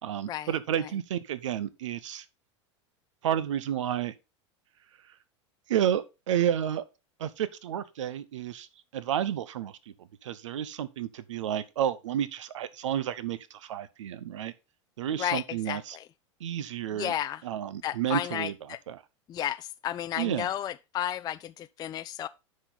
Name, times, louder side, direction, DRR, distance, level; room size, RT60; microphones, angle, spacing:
voice 1, 0.0-2.2 3.2-4.1 5.7-6.8 7.2-8.7 8.9-9.9 10.2-14.5 15.0-16.0 16.4-17.1 17.4-18.5 18.9-19.0 20.2-20.5, right 10 dB, 75° right, 0.9 m, -31 dB
voice 2, 15.2-16.0 16.9-17.4 17.8-18.8 19.3-22.3, left 11 dB, 25° left, 0.4 m, -33 dB
9.8 x 5.4 x 4.0 m
hypercardioid pair, 95°, 16 cm